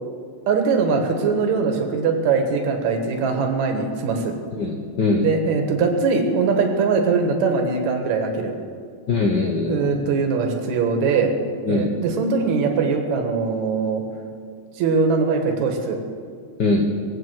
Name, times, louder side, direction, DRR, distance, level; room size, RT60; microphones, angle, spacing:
voice 1, 0.5-4.3 5.2-8.6 9.7-11.3 11.7-14.0 14.8-16.0, right 4 dB, 70° right, 3 dB, 2.7 m, -21 dB
voice 2, 4.6-5.2 9.1-10.0 11.7-11.9 16.6-16.9, left 3 dB, 75° left, 2 dB, 0.9 m, -21 dB
20.0 x 8.3 x 7.8 m, 2.2 s
omnidirectional pair, 3.4 m